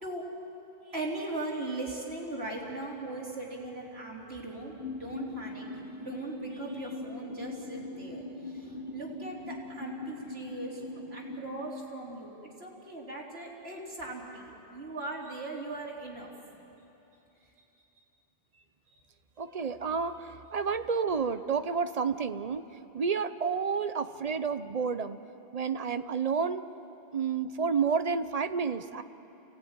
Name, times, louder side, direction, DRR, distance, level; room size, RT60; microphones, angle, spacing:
voice 1, 0.8-16.3 17.4-17.5 18.9-19.0, right 2 dB, 75° right, -3 dB, 3.9 m, -39 dB
sound 1, 4.8-11.7, left 2 dB, 60° left, 1.4 m, -41 dB
voice 2, 19.4-22.6 22.9-25.2 25.5-26.6 27.1-29.0, right 5 dB, 40° right, 11 dB, 0.8 m, -30 dB
28.5 x 17.5 x 9.7 m, 3.0 s
omnidirectional pair, 1.1 m